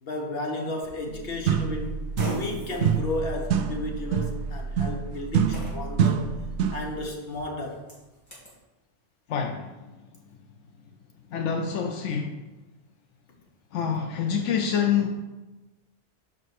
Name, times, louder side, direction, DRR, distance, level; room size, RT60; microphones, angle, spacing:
voice 1, 0.0-1.9 2.3-6.3 6.7-7.8, left 2 dB, 55° left, 1 dB, 1.4 m, -33 dB
Fart, 0.8-8.6, left 1 dB, 15° left, 2.7 m, -43 dB
sound 1, 1.1-1.2 1.5-2.6 2.8-6.9, right 7 dB, 75° right, 0.8 m, -26 dB
voice 2, 9.3-9.9 11.3-12.4 13.7-15.2, left 7 dB, 85° left, 3 dB, 1.0 m, -27 dB
5.4 x 5.0 x 6.5 m, 1.1 s
omnidirectional pair, 1.2 m